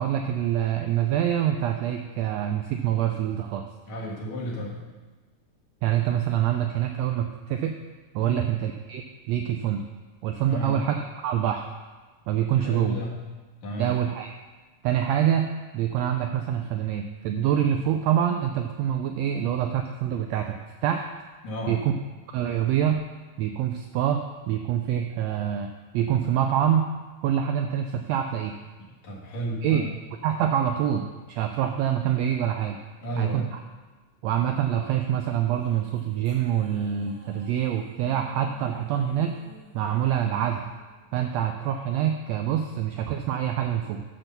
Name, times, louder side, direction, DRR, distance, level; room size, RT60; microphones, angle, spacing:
voice 1, 0.0-3.7 5.8-7.7 8.1-9.8 10.2-11.7 12.3-13.0 13.8-14.3 14.8-20.6 20.8-21.1 21.7-21.9 22.3-23.0 23.4-26.8 27.2-28.6 29.6-29.8 30.2-32.8 33.2-33.6 34.2-39.3 39.7-40.6 41.1-44.0, right 10 dB, 85° right, 5 dB, 1.5 m, -25 dB
voice 2, 3.9-4.9 8.2-8.4 10.5-10.8 12.6-13.1 13.6-14.0 21.4-21.8 29.0-29.9 33.0-33.5, equal, 65° left, -3 dB, 2.8 m, -32 dB
sound 1, 35.5-41.8, right 2 dB, 35° right, 1.9 m, -52 dB
9.9 x 4.5 x 6.6 m, 1.3 s
omnidirectional pair, 3.5 m